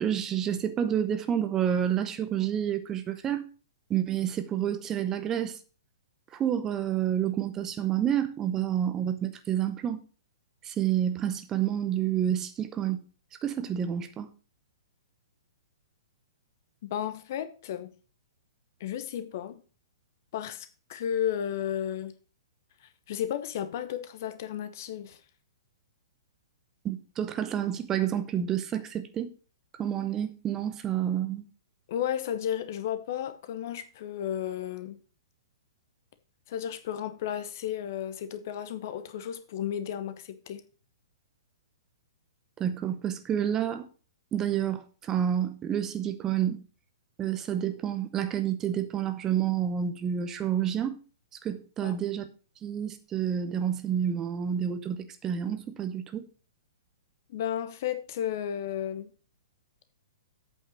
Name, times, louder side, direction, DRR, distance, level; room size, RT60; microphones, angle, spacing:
voice 1, 0.0-3.4 3.9-5.6 6.3-10.0 10.6-13.0 13.4-14.3 26.8-29.3 29.8-31.4 42.6-43.9 44.3-46.6 47.2-51.0 51.4-52.2 52.6-56.3, right 9 dB, 20° right, 0.8 m, -29 dB
voice 2, 16.8-17.9 18.8-19.6 20.3-22.1 22.8-25.2 31.9-35.0 36.5-40.6 51.8-52.0 57.3-59.1, left 10 dB, 45° left, 1.0 m, -33 dB
8.3 x 5.6 x 6.2 m
figure-of-eight pair, 115°, 2 cm